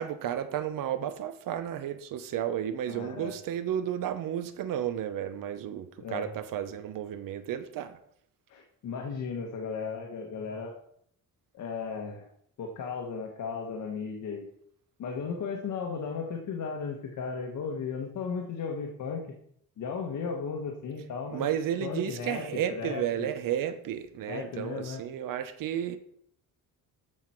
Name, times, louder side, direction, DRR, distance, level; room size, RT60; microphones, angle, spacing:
voice 1, 0.0-8.0 21.3-26.0, right 10 dB, 70° right, 11 dB, 0.9 m, -32 dB
voice 2, 2.9-3.3 6.0-6.3 8.5-10.7 11.5-12.3 12.6-14.5 15.0-19.3 19.8-21.5 21.8-22.4 22.7-23.3 24.3-25.0, left 5 dB, 60° left, 1 dB, 1.6 m, -35 dB
14.0 x 5.7 x 4.6 m, 0.68 s
cardioid pair, 150°, 34 cm